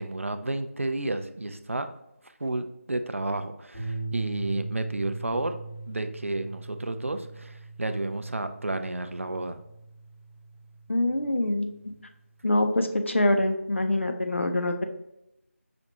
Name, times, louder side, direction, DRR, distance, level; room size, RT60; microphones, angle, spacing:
voice 1, 0.0-1.9 2.4-5.6 5.9-9.6, right 2 dB, 60° right, 8 dB, 0.4 m, -31 dB
sound 1, 3.7-12.1, right 3 dB, ahead, 0.4 m, -40 dB
voice 2, 10.9-12.0 12.4-14.8, left 1 dB, 55° left, 6 dB, 0.6 m, -25 dB
5.9 x 2.5 x 2.8 m, 0.84 s
figure-of-eight pair, 170°, 8 cm